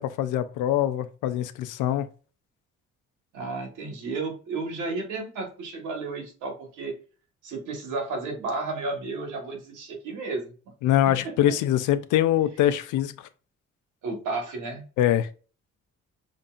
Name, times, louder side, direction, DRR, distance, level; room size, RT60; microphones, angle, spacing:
voice 1, 0.0-2.1 10.8-13.1 15.0-15.3, left 12 dB, 85° left, 0.5 m, -23 dB
voice 2, 3.3-6.9 7.4-10.5 11.0-11.2 14.0-14.8, right 3 dB, 90° right, 1.5 m, -32 dB
5.2 x 2.6 x 2.4 m
cardioid pair, 90°, 30 cm